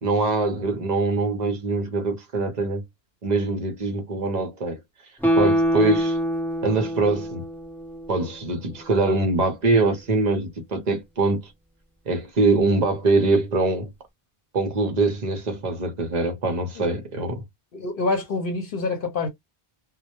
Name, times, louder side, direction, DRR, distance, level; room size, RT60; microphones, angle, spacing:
voice 1, 0.0-2.8 3.2-4.8 5.3-6.2 6.6-7.5 8.1-11.4 12.1-13.9 14.5-17.4, right 3 dB, 50° right, 0.7 m, -23 dB
Guitar, 5.2-8.5 8.8-8.9, equal, ahead, 0.7 m, -25 dB
voice 2, 17.7-19.3, left 3 dB, 65° left, 0.8 m, -26 dB
2.1 x 2.0 x 2.8 m
omnidirectional pair, 1.0 m